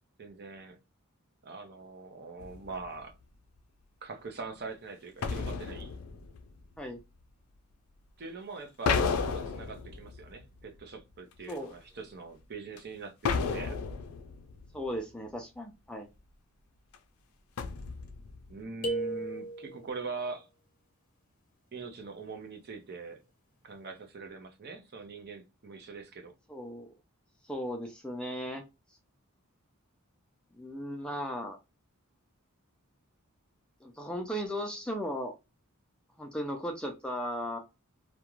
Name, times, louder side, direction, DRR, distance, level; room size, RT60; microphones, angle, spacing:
voice 1, 0.2-0.8 1.4-3.2 4.0-5.9 8.2-13.8 18.5-20.5 21.7-23.2 23.6-26.3, right 4 dB, 45° right, 0.6 m, -43 dB
sound 1, 2.4-3.0 5.2-7.0 8.9-10.8 11.5-11.6 12.8-12.9 13.2-14.8 16.9-17.0 17.6-18.6, left 5 dB, 70° left, 0.4 m, -33 dB
voice 2, 14.7-16.1 26.5-26.9 27.5-28.6 30.5-31.6 33.8-35.3 36.2-37.6, equal, 5° left, 0.4 m, -36 dB
sound 2, 18.8-20.0, right 2 dB, 40° left, 0.8 m, -34 dB
2.4 x 2.1 x 2.9 m
head